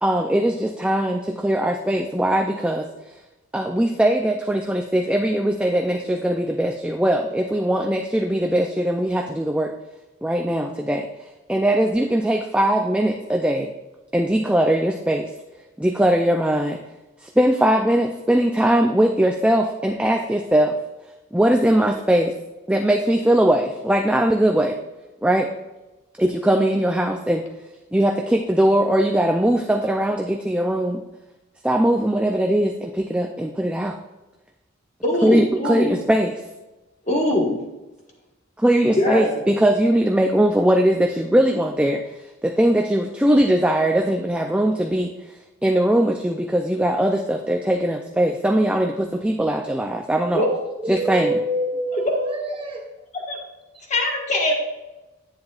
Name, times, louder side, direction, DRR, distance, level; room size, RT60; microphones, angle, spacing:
voice 1, 0.0-2.9 3.5-9.7 10.2-11.1 11.5-13.7 14.1-15.3 15.8-16.8 17.2-20.8 21.3-22.3 22.7-24.8 25.2-25.5 26.2-27.4 27.9-31.0 31.6-34.0 35.2-36.4 38.6-42.0 42.4-45.1 45.6-50.4 50.9-51.3, right 1 dB, 5° right, 2 dB, 0.4 m, -20 dB
voice 2, 35.0-35.9 37.1-37.6 38.8-39.4 50.3-50.5 53.3-53.4 53.9-54.5, left 1 dB, 35° left, 0 dB, 1.5 m, -21 dB
voice 3, 50.8-53.0 53.7-53.8, right 1 dB, 25° right, 1 dB, 1.2 m, -27 dB
10.5 x 9.2 x 2.4 m, 1.1 s
head